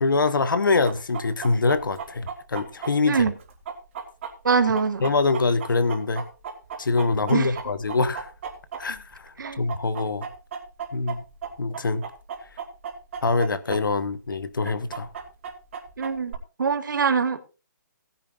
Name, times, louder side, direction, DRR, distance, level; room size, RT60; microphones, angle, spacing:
voice 1, 0.0-3.2 5.0-6.2 6.8-8.3 8.8-10.3 10.9-11.2 11.6-12.0 13.2-15.1, left 3 dB, 90° left, 1.2 m, -24 dB
Chicken rooster, 0.9-9.2 9.4-13.8 14.1-14.2 14.6-16.4, right 7 dB, 40° right, 2.6 m, -35 dB
voice 2, 4.4-5.1 7.3-7.5 9.4-9.7 16.0-17.4, right 5 dB, 75° right, 1.7 m, -23 dB
18.0 x 10.5 x 2.5 m
hypercardioid pair, 160°, 11 cm